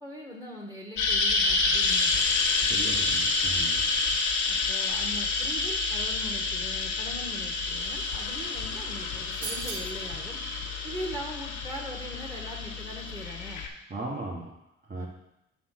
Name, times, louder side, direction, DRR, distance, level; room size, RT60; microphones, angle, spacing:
voice 1, 0.0-2.4 4.5-10.4 10.8-13.7 14.9-15.1, equal, 10° right, -1 dB, 1.5 m, -41 dB
sound 1, 1.0-13.7, left 3 dB, 75° left, 1.0 m, -28 dB
voice 2, 2.5-3.8 13.9-14.5 14.9-15.1, right 2 dB, 25° right, -4 dB, 1.4 m, -37 dB
sound 2, 9.4-10.0, right 6 dB, 50° right, 1.0 m, -36 dB
6.1 x 4.3 x 5.8 m, 0.85 s
cardioid pair, 90°, 30 cm